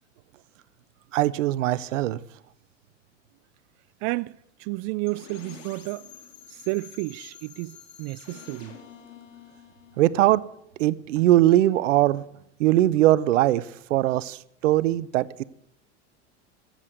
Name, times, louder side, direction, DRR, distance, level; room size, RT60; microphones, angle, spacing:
voice 1, 1.1-2.2 10.0-10.4 10.8-12.2 12.6-15.4, right 14 dB, 85° right, 0.7 m, -21 dB
voice 2, 4.0-4.3 4.6-6.1 6.5-8.8, right 23 dB, 50° right, 0.4 m, -31 dB
sound 1, 5.1-10.9, left 8 dB, 80° left, 2.8 m, -48 dB
14.5 x 7.6 x 8.1 m
hypercardioid pair, 100°, 36 cm